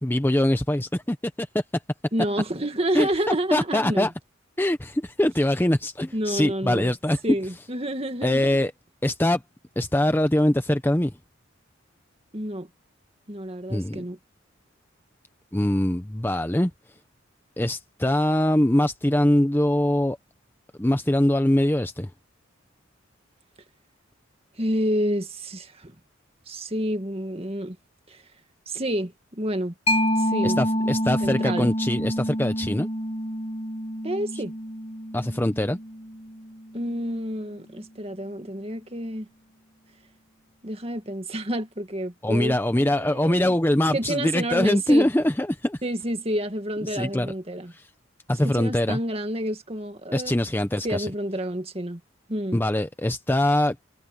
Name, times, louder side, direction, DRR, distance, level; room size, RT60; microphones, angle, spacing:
voice 1, 0.0-1.6 2.9-4.1 4.6-7.2 8.2-8.7 9.0-9.4 9.8-11.1 13.7-14.1 15.5-16.7 17.6-20.2 20.8-22.1 30.4-32.9 35.1-35.8 42.2-45.8 46.9-47.3 47.7-47.8 48.3-49.0 50.1-51.1 52.5-53.8, left 1 dB, 10° left, 0.7 m, -23 dB
voice 2, 2.1-4.1 6.1-6.9 7.2-8.5 12.3-12.7 13.3-14.2 24.6-25.9 26.5-27.8 28.1-28.2 28.7-29.7 30.2-30.9 31.2-31.7 34.0-34.5 36.7-39.3 40.6-43.5 43.9-45.1 45.8-47.7 48.4-50.3 50.8-52.0 52.3-52.6, right 1 dB, 30° right, 2.0 m, -29 dB
Mallet percussion, 29.9-37.1, equal, 30° left, 1.2 m, -28 dB
head